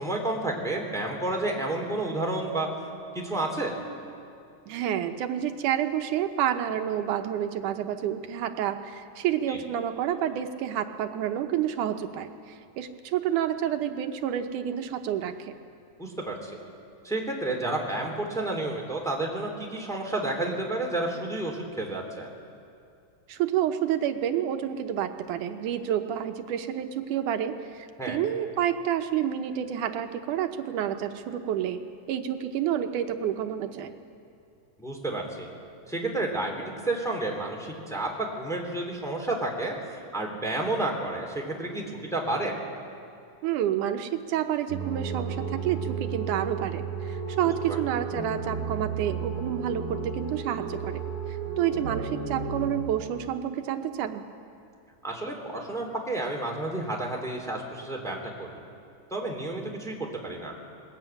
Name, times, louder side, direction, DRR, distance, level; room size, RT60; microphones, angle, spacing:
voice 1, 0.0-2.7 3.1-3.7 9.5-9.6 16.0-16.5 17.0-22.3 28.0-28.2 34.8-35.5 35.9-42.5 47.4-47.8 55.0-58.6 59.1-60.5, right 2 dB, ahead, -1 dB, 2.9 m, -31 dB
voice 2, 4.7-15.6 23.3-33.9 43.4-54.2, right 10 dB, 80° right, 6 dB, 2.4 m, -29 dB
sound 1, 44.7-52.7, right 5 dB, 45° right, 5.4 m, -33 dB
21.0 x 21.0 x 9.1 m, 2.5 s
omnidirectional pair, 3.6 m